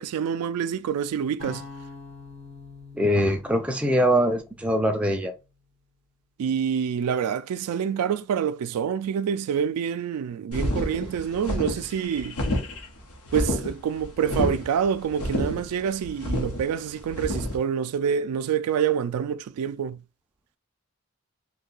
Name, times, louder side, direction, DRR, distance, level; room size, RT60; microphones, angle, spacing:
voice 1, 0.0-1.7 6.4-12.4 13.3-20.0, right 7 dB, 85° right, 0.3 m, -27 dB
sound 1, 1.4-5.5, left 4 dB, 60° left, 1.1 m, -45 dB
voice 2, 3.0-5.3, equal, 5° right, 0.3 m, -22 dB
sound 2, 10.5-17.6, left 1 dB, 85° left, 0.8 m, -29 dB
2.6 x 2.2 x 3.7 m
head